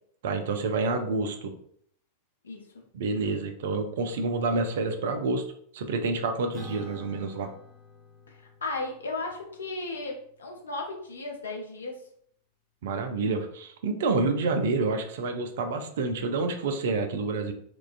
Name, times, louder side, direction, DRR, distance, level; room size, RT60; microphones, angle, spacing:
voice 1, 0.2-1.5 2.9-5.4 5.7-7.5 12.8-17.5, right 3 dB, 55° right, 6 dB, 0.3 m, -28 dB
voice 2, 2.4-2.8 8.3-12.0, left 3 dB, 70° left, 1 dB, 0.5 m, -35 dB
Acoustic guitar / Strum, 6.5-11.3, left 1 dB, 10° left, 0.6 m, -50 dB
2.3 x 2.2 x 2.4 m, 0.65 s
figure-of-eight pair, 90°, 0 cm